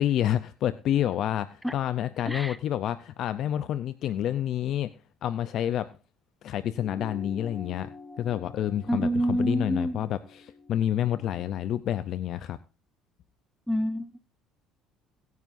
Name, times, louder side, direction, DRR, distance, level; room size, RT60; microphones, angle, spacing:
voice 1, 0.0-4.9 5.2-5.9 6.4-7.9 8.2-12.6, left 11 dB, 50° left, 0.5 m, -28 dB
voice 2, 2.2-2.6 8.9-10.1 13.7-14.2, equal, ahead, 0.6 m, -27 dB
sound 1, 6.7-11.5, left 3 dB, 25° left, 3.2 m, -47 dB
22.0 x 9.4 x 2.6 m
cardioid pair, 140°, 0 cm